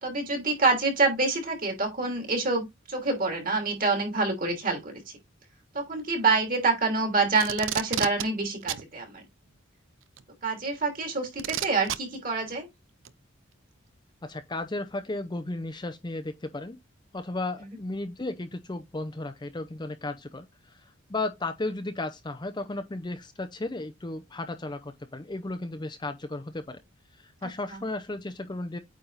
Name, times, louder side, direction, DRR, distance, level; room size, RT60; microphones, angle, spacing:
voice 1, 0.0-5.0 5.7-9.2 10.4-12.7 27.7-27.8, right 3 dB, 45° right, 3.0 m, -27 dB
Packing tape duct tape, 7.4-8.3 8.7-8.8 10.2-10.3 11.4-12.0 13.1-13.2, right 10 dB, 70° right, 0.6 m, -30 dB
voice 2, 14.2-16.8 17.1-26.8 27.2-28.8, left 2 dB, 20° left, 0.6 m, -34 dB
8.9 x 3.5 x 4.1 m
head